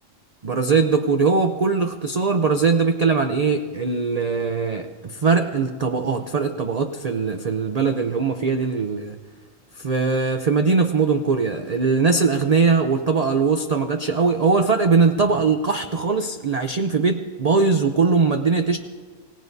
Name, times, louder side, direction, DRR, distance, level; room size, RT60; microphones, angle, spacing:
voice 1, 0.4-9.2 9.8-18.8, right 4 dB, 40° right, 5 dB, 0.6 m, -21 dB
25.5 x 17.5 x 2.7 m, 1.5 s
omnidirectional pair, 1.4 m